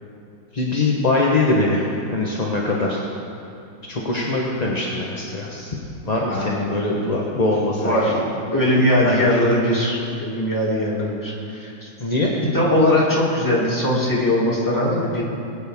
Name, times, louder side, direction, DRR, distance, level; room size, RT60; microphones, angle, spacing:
voice 1, 0.5-1.9 2.1-3.0 3.9-5.7 6.0-8.2 8.7-9.3 12.0-12.3, left 2 dB, 30° left, -3 dB, 0.8 m, -22 dB
voice 2, 6.3-6.6 6.9-7.1 7.7-8.2 8.5-11.9 12.5-15.2, left 1 dB, 10° left, -6 dB, 2.4 m, -20 dB
21.0 x 8.6 x 3.5 m, 2.8 s
omnidirectional pair, 2.0 m